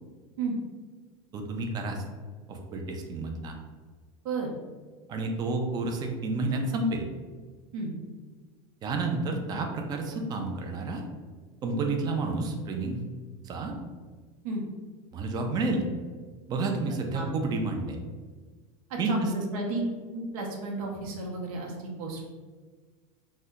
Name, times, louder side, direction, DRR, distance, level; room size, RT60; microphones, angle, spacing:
voice 1, 1.3-2.0 2.5-3.5 5.1-7.0 8.8-11.0 11.6-13.0 13.4-13.7 15.1-15.8 16.5-18.0 19.0-19.3, right 3 dB, 20° right, 3 dB, 0.3 m, -30 dB
voice 2, 18.9-19.8 20.1-22.3, right 3 dB, 75° right, 0 dB, 0.7 m, -33 dB
2.8 x 2.1 x 3.4 m, 1.4 s
supercardioid pair, 145°, 18 cm